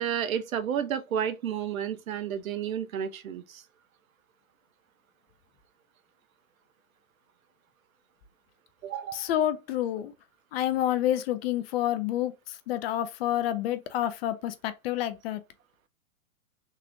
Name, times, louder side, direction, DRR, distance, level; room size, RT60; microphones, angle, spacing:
voice 1, 0.0-3.6 8.8-9.2, right 9 dB, 70° right, 0.9 m, -31 dB
voice 2, 9.1-10.1 10.5-15.4, left 12 dB, 45° left, 0.7 m, -28 dB
3.8 x 3.1 x 2.8 m
hypercardioid pair, 125°, 43 cm